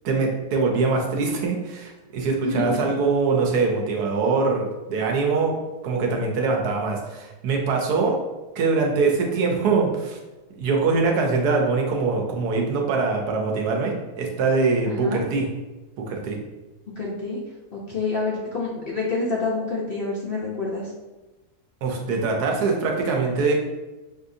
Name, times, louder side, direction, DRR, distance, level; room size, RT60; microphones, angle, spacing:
voice 1, 0.0-5.6 5.8-8.2 8.5-10.2 10.6-15.5 16.1-16.4 21.8-23.6, right 4 dB, 80° right, 1 dB, 1.3 m, -23 dB
voice 2, 2.4-2.8 14.9-15.2 17.0-17.4 17.7-20.9, left 3 dB, 55° left, -4 dB, 0.7 m, -27 dB
6.0 x 2.7 x 2.6 m, 1.1 s
omnidirectional pair, 1.7 m